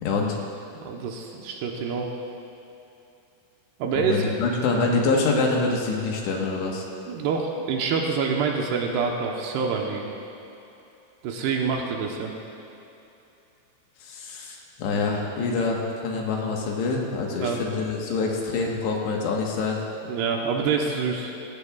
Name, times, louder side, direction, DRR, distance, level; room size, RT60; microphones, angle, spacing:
voice 1, 0.0-0.4 4.0-6.9 14.0-19.8, left 3 dB, 75° left, -1 dB, 3.4 m, -26 dB
voice 2, 0.8-2.1 3.8-4.3 7.1-10.1 11.2-12.3 15.6-15.7 17.4-17.6 20.1-21.4, right 5 dB, 75° right, 1 dB, 2.7 m, -26 dB
19.0 x 16.0 x 2.4 m, 2.9 s
omnidirectional pair, 5.3 m